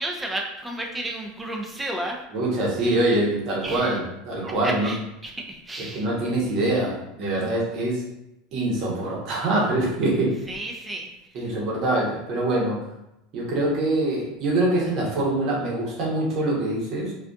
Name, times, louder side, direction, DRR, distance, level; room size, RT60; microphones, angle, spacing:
voice 1, 0.0-2.2 3.6-4.0 4.4-5.0 5.2-6.1 10.5-11.1 11.4-11.5, right 1 dB, 10° right, 1 dB, 0.5 m, -32 dB
voice 2, 2.3-4.9 5.9-8.0 8.5-10.4 11.3-12.8 13.3-17.1, right 2 dB, 55° right, -4 dB, 0.9 m, -24 dB
2.5 x 2.4 x 2.3 m, 0.88 s
hypercardioid pair, 100°, 0 cm